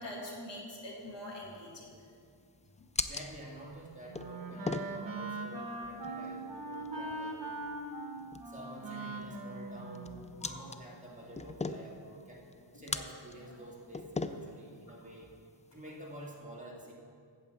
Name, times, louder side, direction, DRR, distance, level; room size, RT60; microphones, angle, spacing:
voice 1, 0.0-2.0 2.8-2.9 6.0-6.2 10.4-10.7 12.7-13.0 13.5-13.6, left 1 dB, 70° left, -2 dB, 2.3 m, -45 dB
sound 1, 1.0-16.3, left 3 dB, 15° left, 0.4 m, -43 dB
voice 2, 3.1-7.4 8.5-12.4 12.7-15.3 15.7-16.9, right 1 dB, 15° right, -3 dB, 2.0 m, -49 dB
Wind instrument woodwind instrument, 3.6-10.7, right 2 dB, 50° right, 1.5 m, -41 dB
8.9 x 7.7 x 7.6 m, 2.2 s
wide cardioid pair, 95°, 45 cm